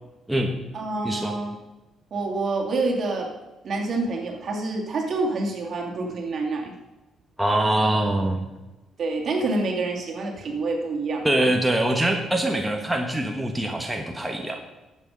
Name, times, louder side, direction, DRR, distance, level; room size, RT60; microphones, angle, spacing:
voice 1, 0.7-1.6 2.1-3.3 3.6-6.7 9.0-11.5, right 3 dB, 55° right, 1 dB, 2.7 m, -27 dB
voice 2, 7.4-8.4 11.2-14.6, right 1 dB, 5° right, 2 dB, 1.4 m, -23 dB
11.5 x 8.4 x 5.3 m, 1.1 s
cardioid pair, 90°, 0 cm